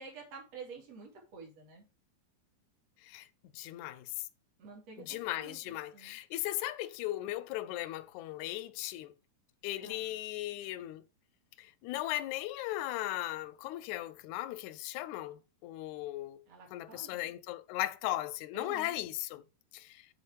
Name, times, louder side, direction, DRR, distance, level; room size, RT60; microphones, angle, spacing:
voice 1, 0.0-1.8 4.6-6.2 9.8-10.1 16.5-17.3 18.5-19.0, right 4 dB, 55° right, 3.4 m, -50 dB
voice 2, 3.5-4.3 5.0-9.1 9.6-11.1 11.6-16.4 16.7-19.4 19.7-20.1, left 15 dB, 80° left, 1.8 m, -37 dB
8.2 x 4.2 x 4.5 m
omnidirectional pair, 3.7 m